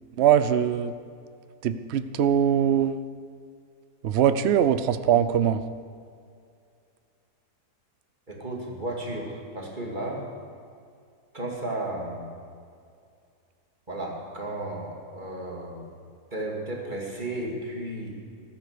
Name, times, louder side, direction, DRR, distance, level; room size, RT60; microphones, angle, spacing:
voice 1, 0.2-0.9 1.6-3.0 4.0-5.6, right 9 dB, 55° right, 11 dB, 0.8 m, -22 dB
voice 2, 8.3-10.2 11.3-12.3 13.9-15.9 16.3-18.1, right 1 dB, 30° right, -2 dB, 2.7 m, -33 dB
15.0 x 13.0 x 6.8 m, 2.3 s
omnidirectional pair, 1.7 m